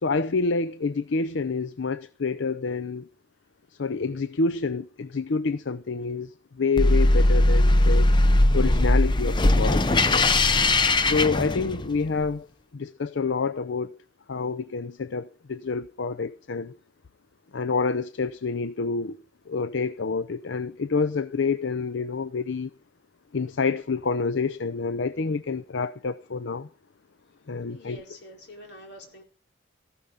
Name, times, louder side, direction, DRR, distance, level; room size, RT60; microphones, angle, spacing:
voice 1, 0.0-3.1 3.7-8.1 8.5-10.3 11.0-12.5 12.7-14.0 14.3-16.7 17.5-19.2 19.5-22.7 23.3-26.7 27.5-28.0, left 4 dB, 75° left, 0.6 m, -28 dB
sound 1, 6.8-12.1, left 2 dB, 25° left, 0.6 m, -19 dB
voice 2, 27.7-29.2, left 1 dB, 60° left, 4.4 m, -46 dB
14.5 x 12.5 x 5.0 m
head